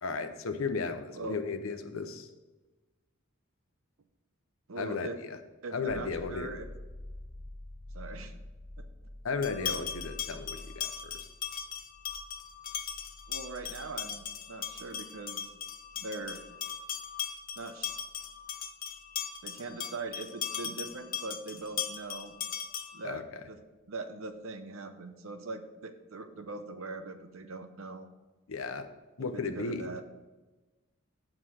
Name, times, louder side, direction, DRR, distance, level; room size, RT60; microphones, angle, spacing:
voice 1, 0.0-2.3 4.8-5.4 5.7-6.5 9.2-11.2 23.0-23.2 28.5-28.9 29.2-30.0, left 4 dB, 80° left, 8 dB, 0.7 m, -35 dB
voice 2, 4.7-5.2 5.6-6.7 7.9-8.3 8.8-8.9 13.3-15.5 16.0-16.4 17.6-17.9 19.4-22.3 22.9-23.2 23.5-23.6 23.9-28.1 29.2-30.0, right 3 dB, 70° right, 8 dB, 0.8 m, -41 dB
sound 1, 5.9-19.4 22.1-22.2, left 1 dB, 25° left, 1.2 m, -49 dB
sound 2, 9.4-23.1, left 8 dB, 45° left, 0.6 m, -38 dB
7.6 x 4.9 x 6.1 m, 1.2 s
head